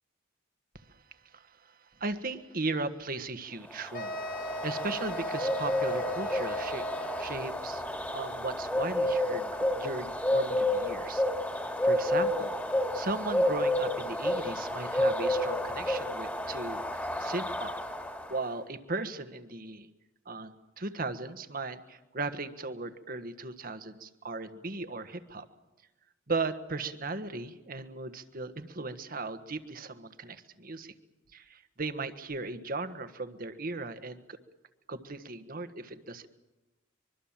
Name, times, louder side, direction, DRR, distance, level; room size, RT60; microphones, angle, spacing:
voice 1, 1.3-4.2 4.6-7.8 8.1-11.2 11.8-12.5 12.9-17.8 18.3-19.9 20.2-25.5 26.3-30.9 31.3-34.4 34.9-36.3, right 3 dB, 45° right, 10 dB, 1.5 m, -37 dB
sound 1, 3.8-18.4, left 1 dB, 10° left, 2.1 m, -30 dB
sound 2, 3.9-7.6, equal, 50° left, 1.8 m, -38 dB
24.5 x 23.0 x 7.4 m, 1.1 s
head